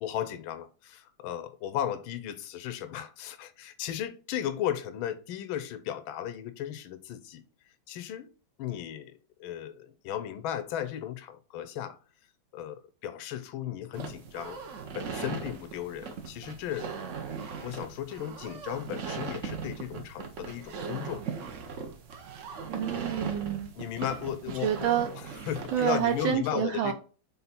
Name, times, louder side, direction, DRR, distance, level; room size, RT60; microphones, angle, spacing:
voice 1, 0.0-7.4 7.9-8.3 8.6-12.0 12.5-14.6 14.9-16.9 17.6-21.2 23.7-24.9 25.5-26.9, left 10 dB, 85° left, 1.4 m, -35 dB
sound 1, 13.9-26.3, right 5 dB, 60° right, 0.8 m, -39 dB
voice 2, 22.7-23.7 24.6-25.1 25.7-26.9, right 9 dB, 80° right, 1.4 m, -28 dB
5.6 x 4.0 x 4.2 m
omnidirectional pair, 2.2 m